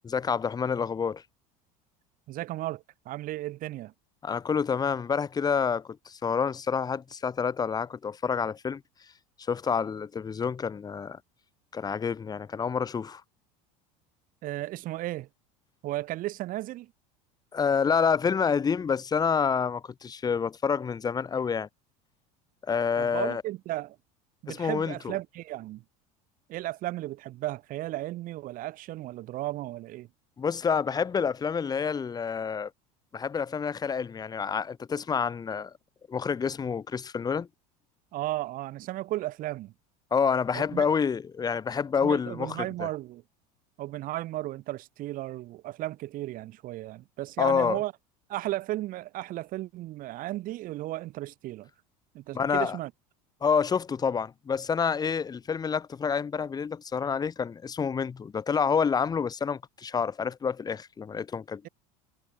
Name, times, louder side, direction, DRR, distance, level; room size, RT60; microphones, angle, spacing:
voice 1, 0.0-1.2 4.2-8.8 9.5-11.2 11.7-13.2 17.5-21.7 22.7-23.4 24.5-25.1 30.4-32.7 33.1-35.7 36.1-37.5 40.1-42.9 47.4-47.8 52.3-52.8 53.4-61.7, left 6 dB, 20° left, 1.6 m, -28 dB
voice 2, 2.3-3.9 14.4-15.3 15.8-16.9 23.0-24.0 24.4-25.8 26.5-30.1 38.1-39.7 40.5-40.9 42.0-43.2 43.8-47.9 48.3-51.7 52.1-52.9, right 16 dB, 55° right, 5.7 m, -34 dB
supercardioid pair, 120°, 17 cm